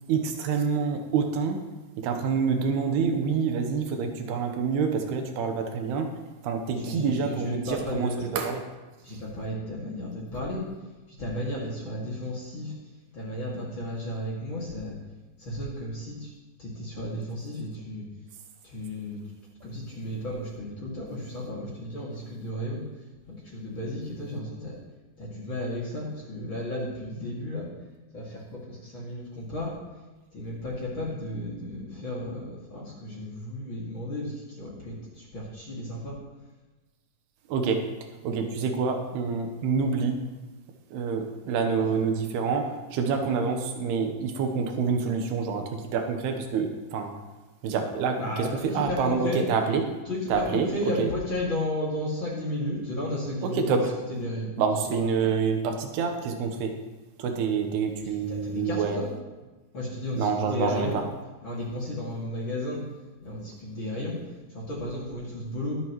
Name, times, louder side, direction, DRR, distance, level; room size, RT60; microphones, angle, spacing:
voice 1, 0.1-1.6 2.0-6.1 6.4-8.6 37.5-37.9 38.2-40.2 40.9-47.1 47.6-49.9 50.3-51.1 53.4-53.9 54.6-56.7 57.2-59.0 60.2-61.0, right 5 dB, 85° right, 4 dB, 3.1 m, -27 dB
voice 2, 6.7-8.3 9.0-10.6 11.2-12.7 13.1-14.9 15.4-16.3 16.6-18.0 18.6-19.2 19.6-22.8 23.3-24.8 25.2-27.7 28.1-29.7 30.3-36.2 41.8-42.0 43.2-43.3 48.2-49.5 50.1-53.8 54.1-54.6 54.9-55.0 58.0-59.1 59.7-61.0 61.4-62.8 63.2-64.2 64.5-65.8, left 1 dB, 35° left, -5 dB, 2.4 m, -33 dB
22.0 x 7.7 x 3.1 m, 1.2 s
omnidirectional pair, 4.5 m